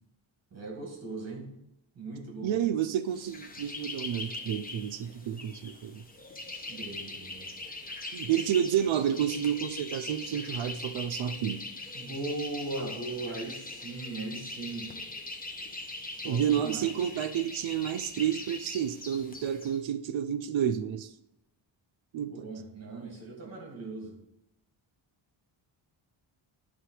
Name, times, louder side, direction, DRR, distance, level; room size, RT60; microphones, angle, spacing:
voice 1, 0.5-1.5 2.0-2.6 6.7-7.5 11.9-14.9 16.2-16.9 22.2-24.2, right 2 dB, 30° right, 2.2 m, -38 dB
voice 2, 2.4-6.0 8.1-11.6 16.2-21.1 22.1-22.5, right 9 dB, 70° right, 0.6 m, -30 dB
sound 1, 3.1-19.8, left 2 dB, 20° left, 0.8 m, -41 dB
11.0 x 3.7 x 4.8 m
wide cardioid pair, 160°, 48 cm